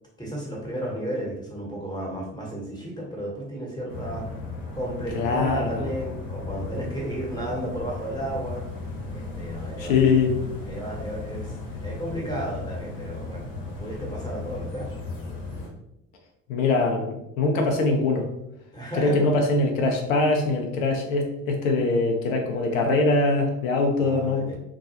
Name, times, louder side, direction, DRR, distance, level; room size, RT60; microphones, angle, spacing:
voice 1, 0.2-4.4 4.7-8.6 9.1-10.1 10.6-11.6 11.8-15.0 18.7-19.2 24.0-24.6, right 1 dB, 10° left, -4 dB, 1.0 m, -33 dB
sound 1, 3.9-15.7, left 3 dB, 55° left, 0.9 m, -36 dB
voice 2, 5.2-5.9 9.8-10.4 16.5-18.3 19.0-24.5, left 3 dB, 85° left, 2 dB, 0.5 m, -23 dB
2.3 x 2.2 x 2.7 m, 0.84 s
hypercardioid pair, 65°, 40 cm